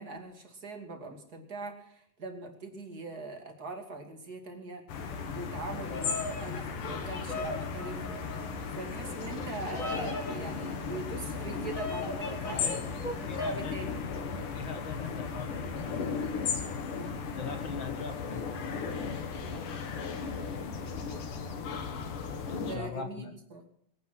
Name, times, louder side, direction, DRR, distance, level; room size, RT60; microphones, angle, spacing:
voice 1, 0.0-4.8 5.3-8.0 8.7-12.8 13.1-14.1 16.9-17.2 22.5-23.6, right 3 dB, 30° right, 3 dB, 2.6 m, -42 dB
sound 1, 4.9-22.8, left 5 dB, 70° left, 3.4 m, -36 dB
Bird vocalization bird call bird song, 5.7-13.7, left 2 dB, 30° left, 1.7 m, -39 dB
voice 2, 12.5-12.9 13.2-13.9 14.5-15.5 15.8-16.3 17.4-19.1 19.5-19.9 21.0-21.1 22.5-23.3, left 5 dB, 50° left, 7 dB, 1.5 m, -42 dB
23.5 x 9.2 x 6.1 m, 0.66 s
omnidirectional pair, 3.9 m